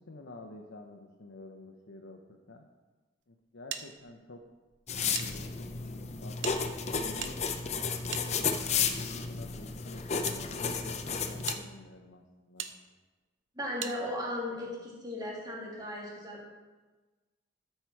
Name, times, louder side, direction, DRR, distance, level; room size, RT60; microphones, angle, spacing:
voice 1, 0.1-2.6 3.3-4.4 4.9-6.4 6.9-7.4 7.9-12.7, left 2 dB, 85° left, 2 dB, 0.8 m, -49 dB
sound 1, 3.7-5.3 5.6-5.7 6.4-8.9 9.7-10.4 11.0-11.1 11.5-11.6 12.6-12.7 13.8-14.0, right 9 dB, 75° right, 0.7 m, -41 dB
sound 2, 4.9-11.5, left 5 dB, 35° left, 0.6 m, -33 dB
voice 2, 13.6-16.5, left 1 dB, 20° right, -4 dB, 2.4 m, -36 dB
13.5 x 5.7 x 4.6 m, 1.2 s
head